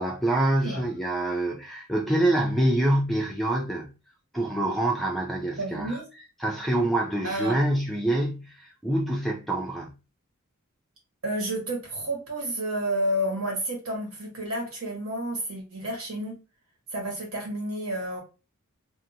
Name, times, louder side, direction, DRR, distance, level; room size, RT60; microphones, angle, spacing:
voice 1, 0.0-3.9 4.3-6.0 6.4-9.9, right 1 dB, ahead, 0.4 m, -26 dB
voice 2, 5.6-6.1 7.2-7.6 11.2-16.3 16.9-18.2, right 1 dB, 75° right, 1.3 m, -30 dB
2.6 x 2.5 x 2.7 m
head